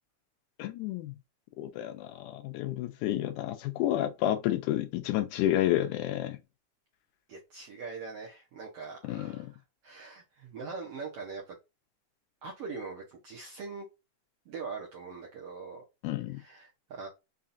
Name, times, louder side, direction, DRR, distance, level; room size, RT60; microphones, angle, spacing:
voice 1, 0.6-1.1 1.6-6.4 9.0-9.5 16.0-16.4, left 13 dB, 80° left, 2.0 m, -30 dB
voice 2, 7.3-9.5 9.8-11.6 12.4-13.9 14.5-15.8 16.4-17.1, right 4 dB, 70° right, 1.4 m, -42 dB
5.6 x 2.4 x 2.5 m
omnidirectional pair, 3.7 m